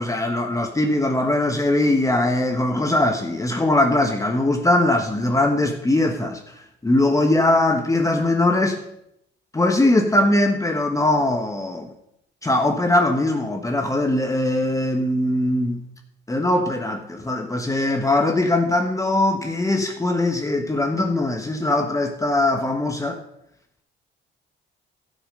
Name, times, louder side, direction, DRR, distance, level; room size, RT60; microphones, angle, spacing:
voice 1, 0.0-8.8 9.5-11.9 12.4-15.8 16.3-23.2, left 1 dB, 15° left, 4 dB, 1.2 m, -21 dB
12.5 x 7.5 x 5.3 m, 0.77 s
cardioid pair, 90°, 20 cm